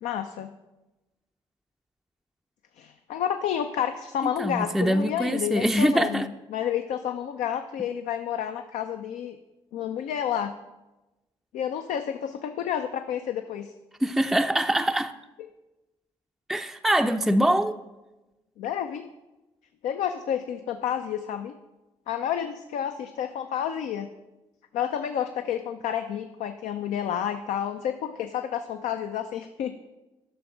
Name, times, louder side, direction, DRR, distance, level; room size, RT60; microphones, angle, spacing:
voice 1, 0.0-0.5 2.8-9.4 9.7-10.5 11.5-13.7 18.6-19.1 19.8-21.6 22.1-24.1 24.7-29.8, left 9 dB, 70° left, 0.4 m, -30 dB
voice 2, 4.4-6.3 14.0-15.1 16.5-17.8, right 1 dB, ahead, 0.4 m, -23 dB
10.0 x 6.1 x 3.8 m
hypercardioid pair, 45°, 13 cm